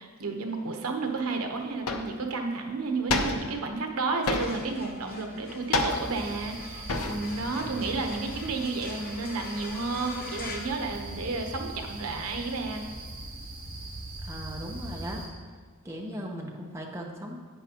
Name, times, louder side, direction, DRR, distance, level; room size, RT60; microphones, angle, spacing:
voice 1, 0.0-12.8, right 3 dB, 85° right, 4 dB, 1.0 m, -32 dB
sound 1, 1.2-1.3 1.9-2.2 3.1-3.6 4.3-4.8 5.7-6.3 6.9-7.4 7.7-8.5, left 2 dB, 90° left, 0.8 m, -29 dB
sound 2, 4.1-11.6, left 3 dB, 45° left, 0.9 m, -45 dB
sound 3, 5.9-15.3, right 2 dB, 40° right, 2.8 m, -41 dB
voice 2, 14.2-15.2 15.8-17.4, equal, 15° right, -1 dB, 0.9 m, -38 dB
11.5 x 8.6 x 2.9 m, 1.5 s
head